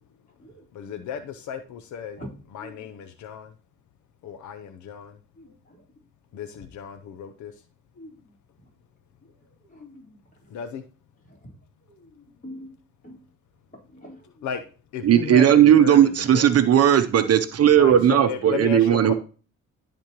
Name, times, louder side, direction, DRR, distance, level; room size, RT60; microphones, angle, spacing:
voice 1, 0.7-2.2 2.5-3.6 4.2-5.2 6.3-7.6 10.5-10.8 14.4-14.6 14.9-16.5 17.7-19.1, left 8 dB, 75° left, 10 dB, 0.7 m, -34 dB
voice 2, 5.4-5.8 6.3-6.4 7.9-8.3 9.2-9.3 9.7-10.2 11.3-11.5 11.9-12.7 13.0-13.2 13.7-14.5 17.9-18.1, equal, 25° left, -2 dB, 4.0 m, -44 dB
voice 3, 15.0-19.1, right 10 dB, 55° right, 10 dB, 0.7 m, -17 dB
13.0 x 4.4 x 3.0 m, 0.38 s
cardioid pair, 90°, 30 cm